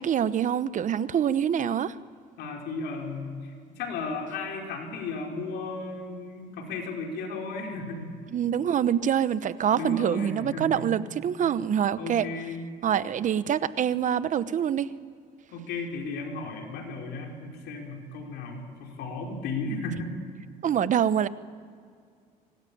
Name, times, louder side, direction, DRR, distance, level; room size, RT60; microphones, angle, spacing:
voice 1, 0.0-1.9 8.3-12.3 12.8-14.9 20.6-21.3, right 9 dB, 50° right, 15 dB, 1.0 m, -25 dB
voice 2, 2.4-8.1 9.7-10.9 11.4-11.6 12.0-12.6 15.5-20.1, left 3 dB, 80° left, 1 dB, 5.1 m, -35 dB
24.5 x 19.5 x 8.7 m, 2.2 s
cardioid pair, 110°, 17 cm